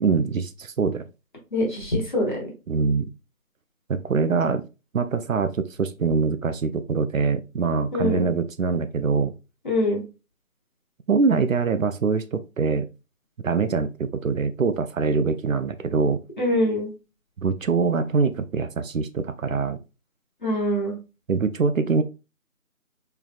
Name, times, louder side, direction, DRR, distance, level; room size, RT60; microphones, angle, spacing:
voice 1, 0.0-1.0 2.7-3.1 3.9-4.6 4.9-9.3 11.1-12.9 13.4-16.2 17.4-19.8 21.3-22.0, right 5 dB, 70° right, 10 dB, 0.5 m, -23 dB
voice 2, 1.5-2.4 7.9-8.3 9.6-10.0 16.4-16.9 20.4-21.0, left 1 dB, 35° left, -2 dB, 1.2 m, -24 dB
3.8 x 3.3 x 2.3 m, 0.29 s
figure-of-eight pair, 165°, 42 cm